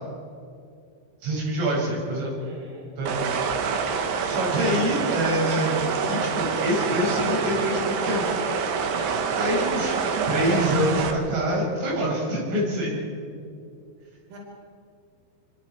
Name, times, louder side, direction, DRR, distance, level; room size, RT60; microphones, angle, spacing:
voice 1, 1.2-2.3 3.0-3.2 4.2-8.3 9.3-9.9 10.3-12.9, equal, 90° right, -4 dB, 9.4 m, -25 dB
voice 2, 2.4-3.4 8.9-9.2 14.3-14.4, right 1 dB, 45° right, -1 dB, 5.8 m, -44 dB
sound 1, 3.1-11.1, right 5 dB, 65° right, 3.3 m, -26 dB
26.0 x 24.5 x 4.8 m, 2.3 s
omnidirectional pair, 5.5 m